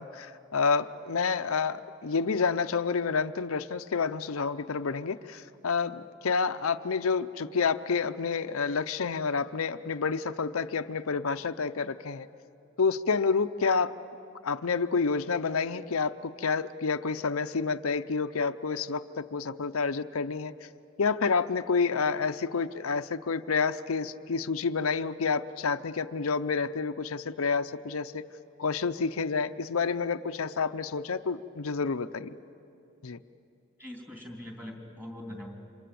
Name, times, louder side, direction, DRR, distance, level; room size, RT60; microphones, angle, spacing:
voice 1, 0.0-12.3 12.8-13.9 14.4-20.5 21.0-28.2 28.6-32.3 33.0-33.2, left 5 dB, 80° left, 9 dB, 0.6 m, -29 dB
voice 2, 33.8-35.5, left 1 dB, 10° right, 1 dB, 3.2 m, -42 dB
28.5 x 26.0 x 7.7 m, 2.7 s
head